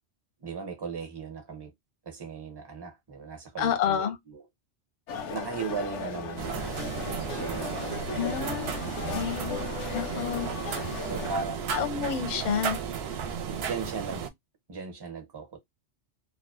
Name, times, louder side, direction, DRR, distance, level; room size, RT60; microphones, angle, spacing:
voice 1, 0.4-1.7 2.0-4.4 5.3-9.4 11.0-11.9 13.5-14.3 14.7-15.6, right 5 dB, 30° right, 0.6 m, -38 dB
voice 2, 3.6-4.2 8.1-8.7 9.1-9.6 9.9-10.5 11.7-12.8, left 8 dB, 55° left, 0.6 m, -29 dB
sound 1, 5.1-11.3, left 5 dB, 90° left, 1.0 m, -36 dB
sound 2, 6.4-14.3, right 7 dB, 65° right, 0.7 m, -34 dB
2.4 x 2.2 x 2.3 m
omnidirectional pair, 1.2 m